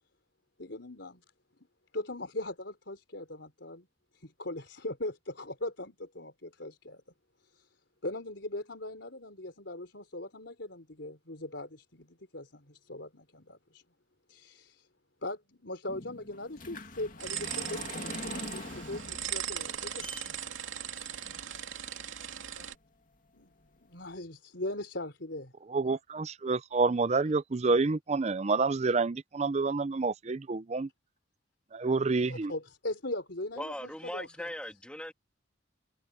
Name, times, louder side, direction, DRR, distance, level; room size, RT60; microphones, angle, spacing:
voice 1, 0.6-1.2 1.9-3.9 4.1-7.0 7.4-7.8 8.0-13.8 14.3-14.9 15.2-20.4 21.5-21.7 23.3-23.5 23.8-25.5 32.3-34.5, left 1 dB, 65° left, 4.3 m, -40 dB
sound 1, 15.9-22.0 22.6-22.7 23.2-23.3 23.6-23.7, left 2 dB, 45° left, 2.5 m, -44 dB
sound 2, 17.2-22.7, right 10 dB, 90° right, 2.8 m, -38 dB
voice 2, 25.7-30.9 31.7-32.5, right 3 dB, 35° right, 0.5 m, -28 dB
voice 3, 33.6-35.1, left 1 dB, 5° left, 2.1 m, -39 dB
head